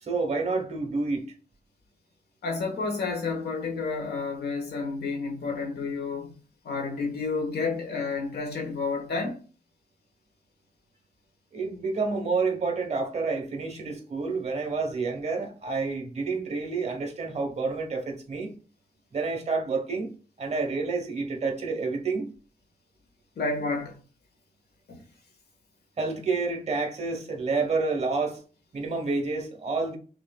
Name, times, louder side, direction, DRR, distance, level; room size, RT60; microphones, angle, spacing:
voice 1, 0.0-1.2 11.5-18.5 19.1-20.1 20.4-22.3 26.0-28.4 28.7-30.0, right 4 dB, 40° right, 1.2 m, -29 dB
voice 2, 2.4-6.3 6.6-9.4 23.3-24.0 24.9-25.0, left 4 dB, 80° left, 1.4 m, -30 dB
6.0 x 2.9 x 2.3 m
wide cardioid pair, 130°, 17 cm